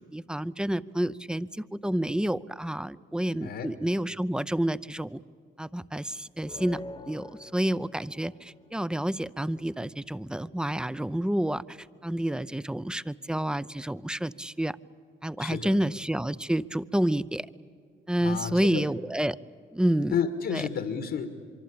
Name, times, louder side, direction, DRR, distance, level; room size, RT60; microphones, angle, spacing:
voice 1, 0.0-5.2 5.6-6.8 7.1-11.8 12.0-14.8 15.2-17.5 18.1-19.4 19.7-20.1 20.5-20.6, right 1 dB, 5° right, 16 dB, 0.6 m, -29 dB
sound 1, 6.4-9.1, left 2 dB, 25° left, 1.2 m, -45 dB
voice 2, 15.4-15.8 18.2-18.9 20.1-21.4, left 7 dB, 70° left, 7 dB, 1.7 m, -31 dB
24.5 x 24.0 x 8.6 m, 2.2 s
cardioid pair, 90°, 20 cm